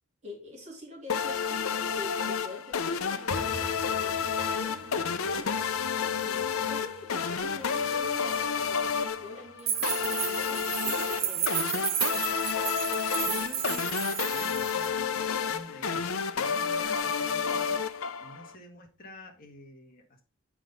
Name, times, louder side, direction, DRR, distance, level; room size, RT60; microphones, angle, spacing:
voice 1, 0.2-5.6 6.1-11.9, left 2 dB, 35° right, -3 dB, 3.4 m, -45 dB
sound 1, 1.1-18.5, left 6 dB, 80° left, 0.7 m, -30 dB
sound 2, 3.3-14.0 14.3-15.0 15.2-15.5 15.8-16.2 16.5-16.6 17.1-17.6 17.9-18.0 18.5-18.6, right 2 dB, 85° right, 1.2 m, -50 dB
sound 3, 6.2-6.3 6.7-6.8 9.7-14.9, right 10 dB, 70° right, 1.0 m, -32 dB
voice 2, 13.2-20.2, left 1 dB, 40° left, 2 dB, 1.9 m, -48 dB
8.2 x 5.6 x 3.9 m, 0.32 s
head